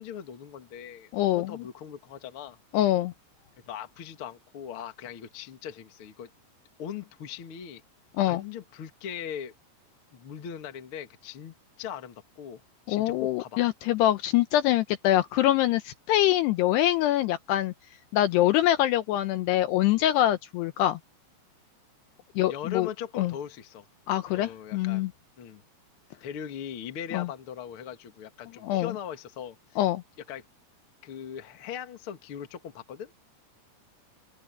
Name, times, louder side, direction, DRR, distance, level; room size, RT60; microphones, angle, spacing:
voice 1, 0.0-2.6 3.6-6.3 6.8-7.8 8.2-9.5 10.1-12.6 12.9-13.7 22.5-23.8 24.3-25.0 25.4-25.6 26.2-29.6 30.3-30.4 31.0-33.1, left 8 dB, 60° left, 1.3 m, -40 dB
voice 2, 1.1-1.6 2.7-3.1 8.2-8.4 12.9-17.7 18.1-21.0 22.4-22.9 23.2-23.3 24.1-25.1 27.1-27.3 28.6-28.9 29.8-30.0, left 14 dB, 80° left, 2.5 m, -24 dB
omnidirectional pair, 5.4 m